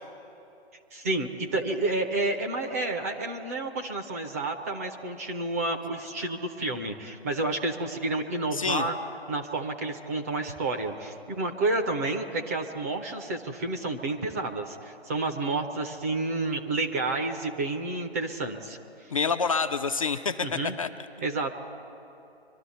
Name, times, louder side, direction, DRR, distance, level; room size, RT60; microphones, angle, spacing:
voice 1, 0.9-9.0 9.3-18.8 20.4-20.7 21.2-21.5, right 2 dB, 15° right, 4 dB, 0.6 m, -30 dB
voice 2, 8.5-8.8 19.1-20.9, left 5 dB, 35° left, 7 dB, 0.5 m, -27 dB
24.5 x 12.5 x 4.1 m, 2.8 s
figure-of-eight pair, 140°, 32 cm